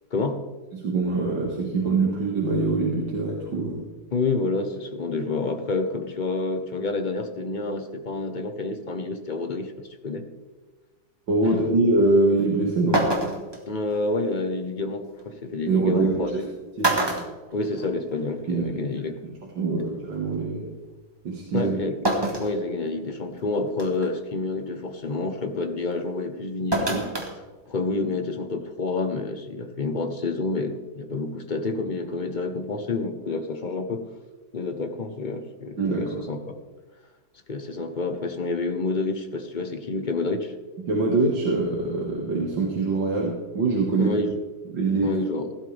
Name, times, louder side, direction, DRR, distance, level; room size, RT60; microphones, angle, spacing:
voice 1, 0.1-0.5 4.1-10.3 11.4-11.5 13.7-16.3 17.5-19.2 21.5-22.0 22.4-27.1 27.7-34.1 34.5-36.5 37.5-40.5 43.9-44.3 45.0-45.5, left 3 dB, 35° left, 6 dB, 0.8 m, -28 dB
voice 2, 0.7-3.8 11.3-13.0 15.7-16.4 16.8-16.9 18.5-19.0 19.6-20.7 21.2-21.8 35.8-36.2 40.9-44.1 44.7-45.2, right 3 dB, 90° right, -2 dB, 2.5 m, -24 dB
sound 1, 12.4-12.5 12.9-13.6 15.2-15.3 16.3-16.4 16.8-18.2 18.5-18.6 19.9-20.0 22.1-22.6 23.1-23.2 23.8-24.1 26.7-27.3 27.7-27.8, right 1 dB, 15° right, 1.5 m, -25 dB
16.5 x 12.0 x 3.4 m, 1.3 s
omnidirectional pair, 1.9 m